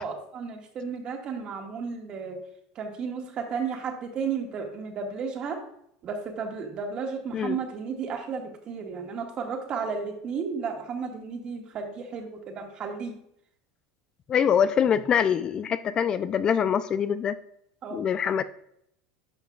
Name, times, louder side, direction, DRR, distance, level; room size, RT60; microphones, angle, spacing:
voice 1, 0.0-2.4 2.8-5.6 6.0-13.1 17.8-18.0, right 5 dB, 40° right, 3 dB, 1.7 m, -33 dB
voice 2, 14.3-17.4 17.9-18.4, left 8 dB, 35° left, 13 dB, 0.4 m, -24 dB
10.5 x 5.7 x 2.4 m, 0.73 s
supercardioid pair, 115°, 2 cm